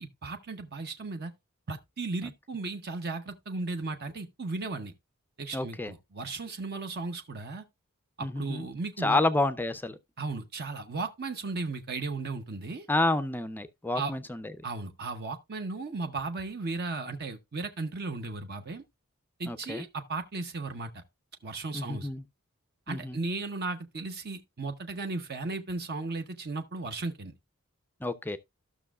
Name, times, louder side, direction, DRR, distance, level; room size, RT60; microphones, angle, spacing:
voice 1, 0.0-1.3 1.7-4.9 5.4-7.6 8.2-9.2 10.2-12.9 13.9-14.1 14.6-18.8 19.4-21.0 21.4-22.1 22.9-27.3, right 3 dB, 45° right, 0.8 m, -35 dB
voice 2, 5.5-5.9 8.2-8.7 9.0-10.0 12.9-14.5 19.5-19.9 21.7-22.2 22.9-23.2 28.0-28.4, left 2 dB, 10° left, 0.4 m, -29 dB
14.5 x 6.1 x 2.3 m
head